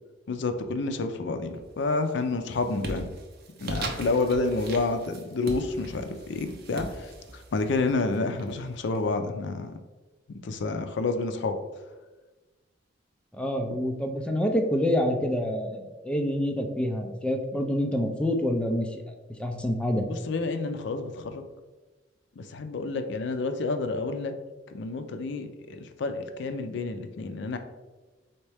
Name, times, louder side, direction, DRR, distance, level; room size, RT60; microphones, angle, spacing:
voice 1, 0.3-3.1 3.6-9.7 10.3-11.6 20.1-21.4 22.4-24.3 24.7-27.6, left 3 dB, 65° left, 7 dB, 0.4 m, -29 dB
sound 1, 1.5-2.0 2.3-9.0, right 2 dB, 55° right, 0.7 m, -40 dB
voice 2, 13.3-19.0 19.4-20.1, equal, 5° left, 4 dB, 0.4 m, -27 dB
4.2 x 3.5 x 3.3 m, 1.2 s
head